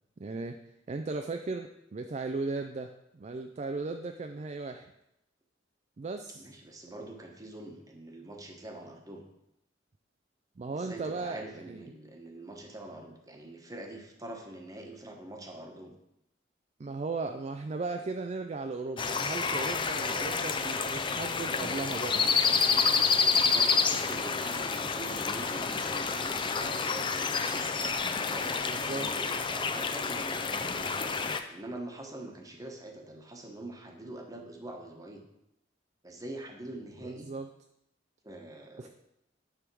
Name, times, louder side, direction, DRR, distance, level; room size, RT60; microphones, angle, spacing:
voice 1, 0.2-0.6 0.9-4.9 6.0-6.5 10.6-11.8 16.8-22.3 28.6-29.1 37.0-37.5 38.8-38.9, right 3 dB, 35° right, 6 dB, 0.4 m, -36 dB
voice 2, 6.4-9.2 10.7-15.9 22.8-27.5 28.2-31.1 31.5-35.2 36.0-37.3 38.2-38.9, right 1 dB, 20° right, 2 dB, 1.1 m, -44 dB
sound 1, 19.0-31.4, left 5 dB, 25° left, 0.5 m, -29 dB
10.0 x 3.6 x 6.1 m, 0.82 s
head